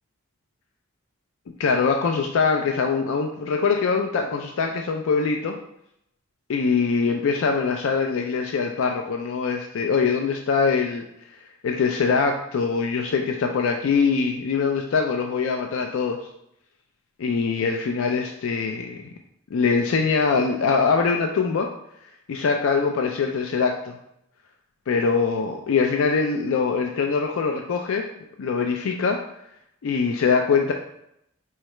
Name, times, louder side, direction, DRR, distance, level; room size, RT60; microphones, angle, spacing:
voice 1, 1.6-5.6 6.5-11.0 11.6-16.2 17.2-19.0 19.5-21.7 22.3-23.9 24.9-28.0 28.4-29.2 29.8-30.7, left 5 dB, 85° left, 3 dB, 0.4 m, -23 dB
4.6 x 3.2 x 3.0 m, 0.78 s
head